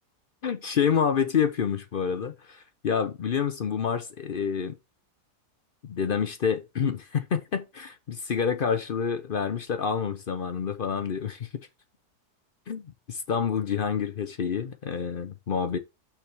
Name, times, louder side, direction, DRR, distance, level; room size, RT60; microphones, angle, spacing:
voice 1, 0.4-4.7 5.8-11.5 12.7-15.8, left 7 dB, 55° left, 0.6 m, -28 dB
6.0 x 4.9 x 5.9 m
omnidirectional pair, 1.7 m